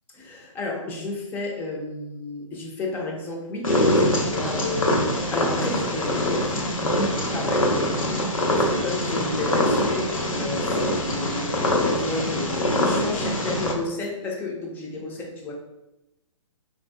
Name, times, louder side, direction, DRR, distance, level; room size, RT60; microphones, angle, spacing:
voice 1, 0.1-15.5, left 2 dB, 10° left, -1 dB, 0.5 m, -32 dB
Purr, 3.6-13.7, left 1 dB, 90° left, 0.7 m, -24 dB
3.6 x 2.7 x 2.2 m, 0.94 s
hypercardioid pair, 135°, 17 cm